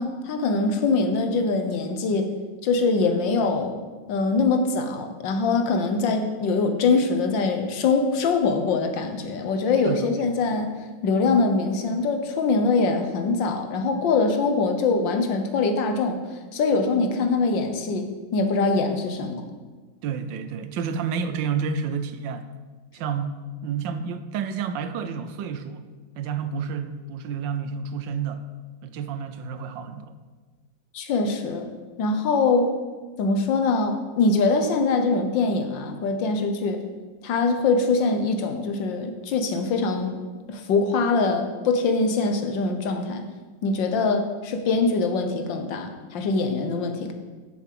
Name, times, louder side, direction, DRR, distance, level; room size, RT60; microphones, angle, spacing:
voice 1, 0.0-2.3 2.6-3.7 4.1-10.7 11.0-16.2 16.5-18.1 18.3-19.4 30.9-31.7 32.0-32.7 33.2-36.8 37.2-40.2 40.5-43.2 43.6-47.1, left 3 dB, 85° left, 6 dB, 1.7 m, -23 dB
voice 2, 9.8-10.4 20.0-22.5 22.9-25.8 26.2-28.4 28.8-30.1, right 6 dB, 85° right, 10 dB, 1.5 m, -30 dB
7.2 x 7.0 x 7.6 m, 1.4 s
omnidirectional pair, 2.0 m